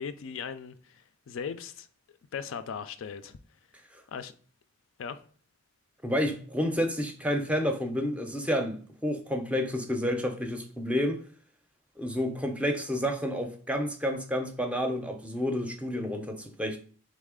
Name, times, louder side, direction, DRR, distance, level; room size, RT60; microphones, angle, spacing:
voice 1, 0.0-1.9 2.3-3.4 4.1-4.3 5.0-5.2, left 6 dB, 70° left, 0.4 m, -38 dB
voice 2, 6.0-11.2 12.0-16.8, equal, 5° right, 0.5 m, -30 dB
4.1 x 3.1 x 3.6 m
head